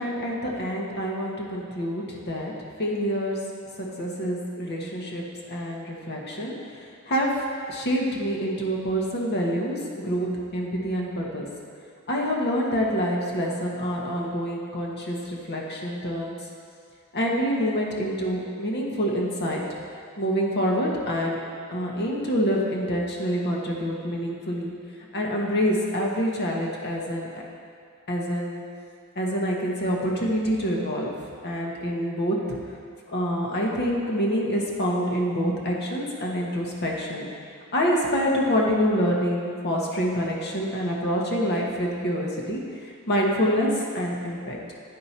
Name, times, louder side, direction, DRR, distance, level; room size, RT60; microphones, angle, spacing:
voice 1, 0.0-2.5 2.8-3.4 3.8-6.5 7.1-7.3 7.7-11.5 12.1-16.4 17.1-19.6 20.2-21.4 21.7-24.7 25.1-27.3 28.1-28.6 29.2-31.1 31.4-32.6 33.1-37.3 37.7-42.6 43.1-44.6, equal, 50° left, -2 dB, 1.1 m, -26 dB
9.6 x 4.6 x 4.3 m, 2.2 s
head